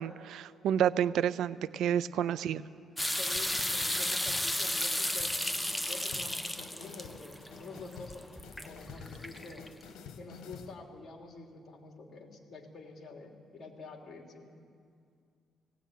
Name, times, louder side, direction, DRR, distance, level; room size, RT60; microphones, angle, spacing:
voice 1, 0.0-2.6, right 9 dB, 80° right, 17 dB, 0.5 m, -29 dB
voice 2, 2.1-2.5 3.2-5.3 5.8-9.7 10.2-14.5, left 3 dB, 50° left, 2 dB, 3.2 m, -48 dB
sound 1, 3.0-9.8, left 1 dB, 5° left, 1.0 m, -34 dB
sound 2, 3.4-10.7, left 7 dB, 85° left, 1.4 m, -50 dB
18.0 x 16.5 x 9.3 m, 2.3 s
cardioid pair, 90°, 0 cm